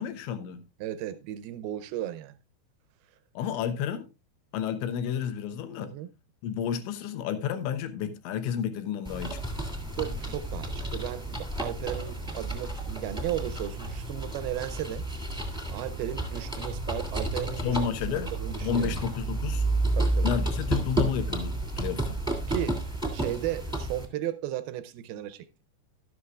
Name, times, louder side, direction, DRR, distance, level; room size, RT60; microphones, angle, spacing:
voice 1, 0.0-0.6 3.4-4.1 4.5-6.0 6.4-9.4 17.6-18.3 18.6-19.6 20.2-22.2, left 8 dB, 90° left, 3.3 m, -31 dB
voice 2, 0.8-2.4 5.8-6.1 10.0-15.1 15.7-17.8 18.3-19.1 20.0-20.3 22.5-22.8 23.1-25.5, right 13 dB, 85° right, 2.2 m, -35 dB
sound 1, 9.0-24.0, right 2 dB, 5° right, 0.7 m, -31 dB
12.5 x 12.0 x 2.4 m
omnidirectional pair, 5.1 m